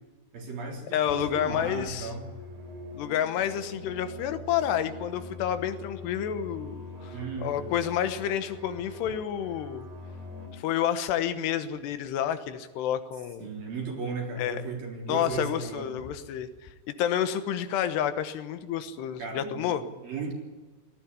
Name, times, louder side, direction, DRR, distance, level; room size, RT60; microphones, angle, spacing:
voice 1, 0.3-2.3 7.1-7.7 13.4-15.9 19.2-20.3, right 4 dB, 60° right, 0 dB, 5.4 m, -36 dB
voice 2, 0.9-2.1 3.0-9.9 10.5-13.5 14.4-14.6 15.1-19.8, left 10 dB, 85° left, 10 dB, 3.3 m, -29 dB
sound 1, 1.2-10.5, left 2 dB, 85° right, 6.1 m, -43 dB
19.0 x 14.5 x 9.7 m, 1.3 s
omnidirectional pair, 4.7 m